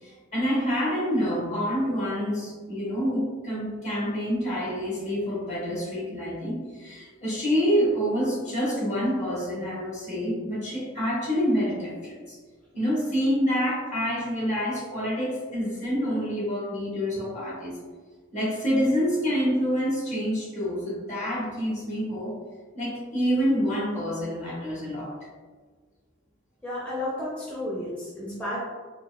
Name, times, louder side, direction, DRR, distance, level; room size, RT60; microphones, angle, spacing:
voice 1, 0.0-12.4 12.7-17.7 18.3-22.4 22.7-25.1, equal, 40° left, -6 dB, 1.2 m, -27 dB
voice 2, 26.6-28.6, left 1 dB, 5° left, -8 dB, 0.6 m, -32 dB
4.3 x 2.3 x 2.3 m, 1.5 s
head